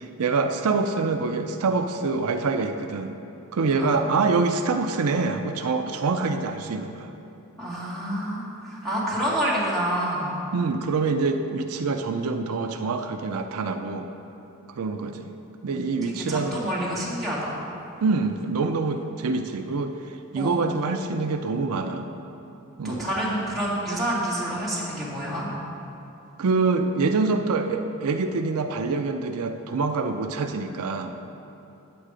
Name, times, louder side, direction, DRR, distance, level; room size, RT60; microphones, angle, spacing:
voice 1, 0.0-3.1 3.5-7.1 10.5-14.1 14.8-15.3 15.6-16.6 18.0-22.1 22.8-23.1 26.4-31.2, right 4 dB, 75° right, 6 dB, 0.5 m, -25 dB
voice 2, 7.6-10.4 16.0-17.5 20.3-20.7 22.8-25.5, equal, ahead, -9 dB, 2.3 m, -28 dB
8.9 x 7.9 x 4.9 m, 2.8 s
head